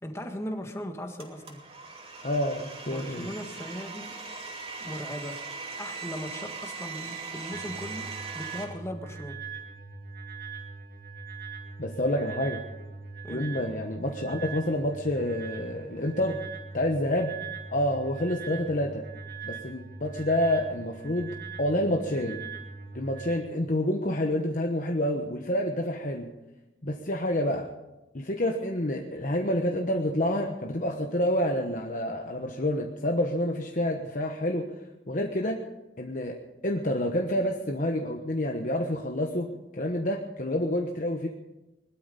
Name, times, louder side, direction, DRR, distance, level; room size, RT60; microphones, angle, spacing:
voice 1, 0.0-1.6 2.9-4.2 4.8-5.5 5.8-9.4 13.2-13.6, equal, 15° left, 4 dB, 1.6 m, -38 dB
Domestic sounds home sounds, 1.2-8.6, right 4 dB, 35° right, 2.7 m, -40 dB
voice 2, 2.2-3.3 11.8-12.6 13.3-16.4 16.7-17.3 17.7-19.0 19.4-21.3 21.6-22.4 22.9-26.3 26.8-27.7 28.1-34.7 35.1-35.6 36.0-36.4 36.6-41.3, left 1 dB, 45° left, 2 dB, 1.1 m, -28 dB
sound 1, 7.5-23.4, right 5 dB, 55° right, 2.4 m, -41 dB
20.5 x 12.5 x 5.4 m, 1.0 s
head